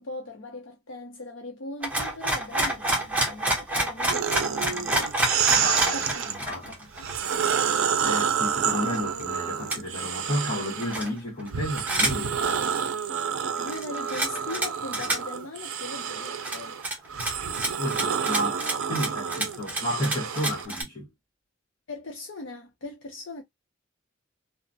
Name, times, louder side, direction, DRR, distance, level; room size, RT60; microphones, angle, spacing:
voice 1, 0.0-5.1 5.9-7.2 13.6-16.8 21.9-23.4, left 2 dB, 65° left, 0.6 m, -40 dB
sound 1, 1.8-7.4 7.9-8.0 8.3-9.2 9.7-9.8 10.8-11.5 11.8-12.2 12.5-12.7 13.6-14.7 14.9-15.2 15.9-16.0 16.3-20.8, right 1 dB, 10° right, 0.8 m, -28 dB
sound 2, 4.1-6.4 6.9-11.0 11.5-20.7, right 7 dB, 90° right, 0.5 m, -29 dB
voice 2, 5.5-6.8 8.0-12.6 17.8-21.1, equal, 35° left, 1.5 m, -32 dB
3.0 x 2.1 x 2.6 m
head